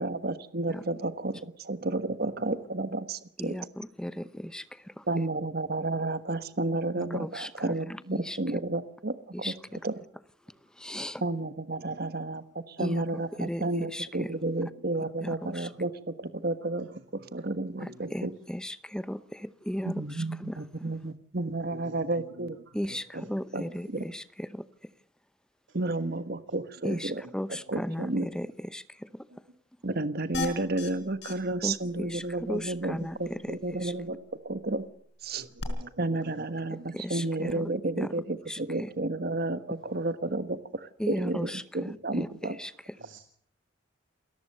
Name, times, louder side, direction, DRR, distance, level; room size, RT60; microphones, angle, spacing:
voice 1, 0.0-3.5 5.1-9.5 9.8-9.9 11.2-18.3 19.8-22.6 23.1-23.2 23.5-24.0 25.7-27.2 27.7-28.3 29.8-34.2 34.4-34.8 35.2-35.5 36.0-42.6, right 2 dB, 50° right, 1.3 m, -32 dB
voice 2, 3.4-5.0 7.0-8.4 9.3-9.8 10.8-11.2 12.8-14.3 15.2-15.7 17.8-20.6 22.7-24.7 26.8-29.3 31.6-33.9 36.7-37.7 38.0-38.1 38.5-38.9 41.0-42.7, equal, 5° left, 0.8 m, -36 dB
voice 3, 11.8-12.4 15.0-15.1 15.6-15.8 17.8-18.1 21.7-23.3 23.6-23.7 25.7-25.8 29.3-29.4 35.4-36.7 39.0-39.1 43.0-43.2, right 1 dB, 80° right, 2.6 m, -49 dB
sound 1, 30.3-30.9 31.2-31.3 31.7-31.8 32.1-32.2 35.6-35.7, left 3 dB, 60° left, 4.3 m, -34 dB
28.0 x 14.5 x 6.6 m
head